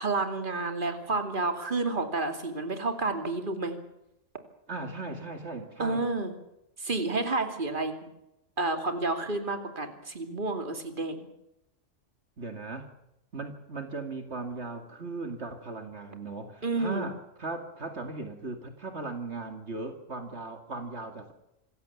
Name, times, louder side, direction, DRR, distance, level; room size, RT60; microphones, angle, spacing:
voice 1, 0.0-3.8 5.8-6.3 6.8-7.9 8.6-11.3 16.6-17.1, right 3 dB, 45° right, 7 dB, 2.9 m, -30 dB
voice 2, 4.7-6.1 12.4-12.9 13.3-21.3, right 3 dB, 65° right, 5 dB, 2.6 m, -38 dB
26.5 x 16.0 x 7.1 m, 0.84 s
omnidirectional pair, 1.3 m